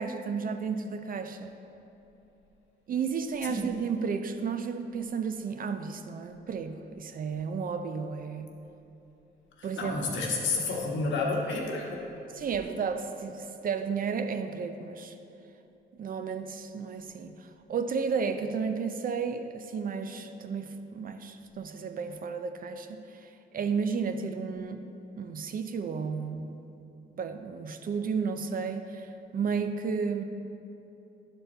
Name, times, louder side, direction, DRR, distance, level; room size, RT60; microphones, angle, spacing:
voice 1, 0.0-1.5 2.9-8.5 9.6-10.0 12.3-15.1 16.0-24.9 25.2-26.6 27.2-30.2, right 5 dB, 45° right, 8 dB, 0.5 m, -33 dB
voice 2, 9.6-12.0, left 3 dB, 70° left, -1 dB, 1.3 m, -30 dB
10.5 x 4.5 x 3.9 m, 2.9 s
cardioid pair, 90°, 20 cm